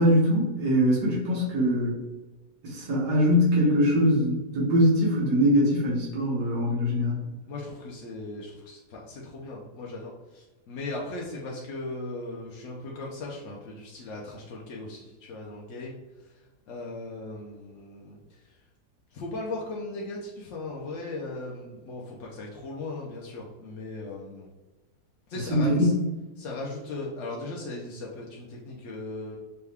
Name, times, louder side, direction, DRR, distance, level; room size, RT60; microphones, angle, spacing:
voice 1, 0.0-2.0 2.6-7.2 25.5-25.9, equal, 90° right, -6 dB, 1.9 m, -22 dB
voice 2, 7.5-16.0 16.7-18.2 19.1-24.5 25.3-25.9 26.4-29.4, left 2 dB, 65° left, -3 dB, 0.8 m, -38 dB
5.6 x 2.2 x 3.4 m, 1.2 s
omnidirectional pair, 1.7 m